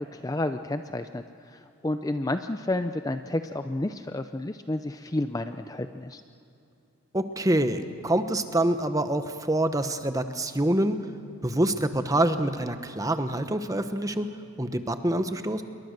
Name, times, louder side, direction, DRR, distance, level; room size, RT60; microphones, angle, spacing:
voice 1, 0.1-6.2, left 1 dB, 15° left, 9 dB, 0.5 m, -31 dB
voice 2, 7.1-11.0 11.4-14.3 14.6-15.6, right 1 dB, 15° right, 9 dB, 1.0 m, -26 dB
27.5 x 22.5 x 6.6 m, 2.8 s
head